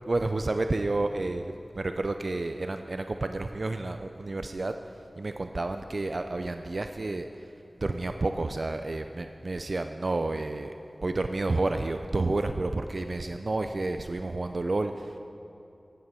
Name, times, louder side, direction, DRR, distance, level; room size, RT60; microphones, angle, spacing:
voice 1, 0.1-4.7 5.2-7.3 7.8-10.7 11.0-15.2, right 2 dB, 60° right, 7 dB, 0.4 m, -30 dB
14.5 x 8.7 x 5.6 m, 2.8 s
wide cardioid pair, 70°, 0 cm